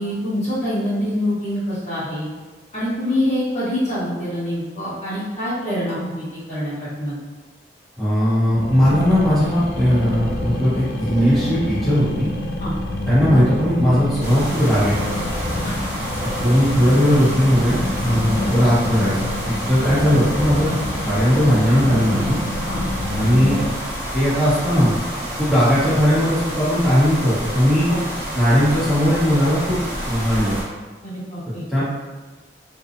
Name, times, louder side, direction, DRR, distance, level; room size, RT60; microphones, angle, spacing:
voice 1, 0.0-2.3 2.7-7.1 12.6-12.7 16.0-16.1 18.1-18.2 19.6-19.9 22.7-22.8 27.9-28.0 31.0-31.6, equal, 40° left, -12 dB, 1.1 m, -25 dB
voice 2, 8.0-12.3 13.1-14.9 16.4-19.1 19.4-20.7 21.0-22.4 23.1-23.6 24.1-24.9 25.4-27.9 28.3-29.8 30.0-30.5 31.7-31.8, equal, ahead, -14 dB, 0.9 m, -18 dB
sound 1, 8.5-23.7, left 1 dB, 60° left, 0.3 m, -27 dB
sound 2, 14.2-30.6, equal, 15° right, 1.1 m, -29 dB
2.6 x 2.3 x 2.5 m, 1.3 s
head